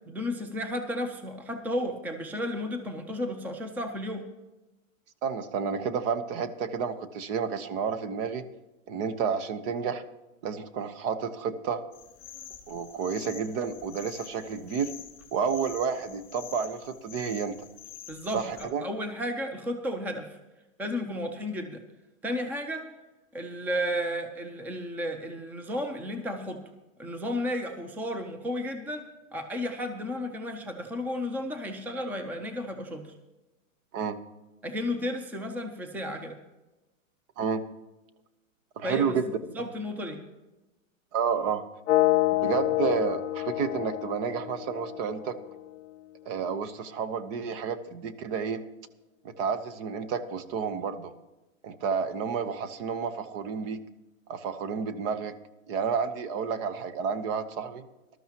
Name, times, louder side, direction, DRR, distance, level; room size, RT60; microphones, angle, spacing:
voice 1, 0.1-4.3 18.1-20.4 20.8-21.8 22.2-22.9 23.3-26.6 27.0-33.1 34.6-36.4 38.8-39.2 39.5-40.2, left 1 dB, 5° right, 6 dB, 0.7 m, -33 dB
voice 2, 5.2-8.4 8.9-10.0 10.4-11.8 12.7-14.9 15.3-17.5 18.3-18.8 33.9-34.2 37.4-37.6 38.8-39.3 41.1-41.6 42.4-45.4 46.3-48.6 49.2-51.1 51.6-53.8 54.3-55.3 55.7-57.9, right 6 dB, 45° right, 11 dB, 1.0 m, -30 dB
sound 1, 11.9-18.6, left 9 dB, 20° left, 2.4 m, -47 dB
sound 2, 41.9-45.8, left 17 dB, 55° left, 0.6 m, -27 dB
19.0 x 13.0 x 3.0 m, 1.1 s
hypercardioid pair, 130°, 40 cm